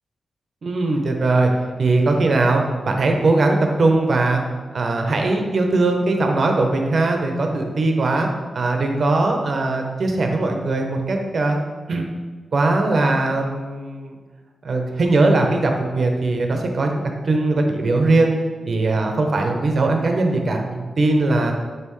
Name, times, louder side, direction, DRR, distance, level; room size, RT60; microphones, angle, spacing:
voice 1, 0.6-1.5 1.8-4.4 4.7-8.3 8.5-11.6 11.9-12.0 12.5-14.1 14.6-18.3 18.7-21.5, right 2 dB, 55° right, 3 dB, 0.8 m, -20 dB
7.5 x 5.6 x 3.2 m, 1.4 s
wide cardioid pair, 120°, 0 cm